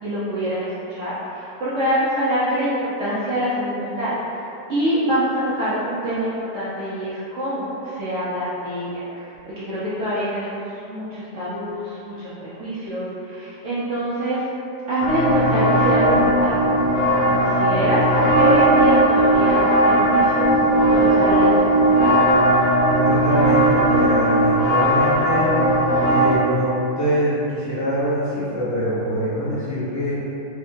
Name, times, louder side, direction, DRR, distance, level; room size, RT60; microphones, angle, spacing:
voice 1, 0.0-4.1 4.7-14.4 14.9-16.6 17.2-20.5 20.9-22.1, equal, 70° right, -11 dB, 0.7 m, -25 dB
sound 1, 15.0-26.4, right 1 dB, 75° left, 1.1 m, -17 dB
voice 2, 23.0-25.5 26.0-30.2, equal, 30° left, -12 dB, 0.3 m, -24 dB
3.5 x 2.1 x 2.7 m, 2.8 s
omnidirectional pair, 1.9 m